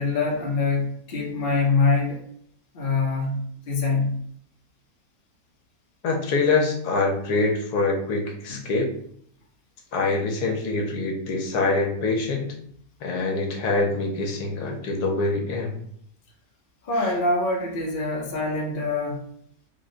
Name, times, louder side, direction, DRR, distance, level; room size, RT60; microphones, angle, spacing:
voice 1, 0.0-2.2 2.7-4.2 16.8-19.2, left 3 dB, 45° left, -2 dB, 0.8 m, -24 dB
voice 2, 6.0-8.9 9.9-12.5 13.0-15.7, left 3 dB, 75° left, 1 dB, 1.3 m, -24 dB
3.6 x 2.2 x 3.8 m, 0.66 s
omnidirectional pair, 1.7 m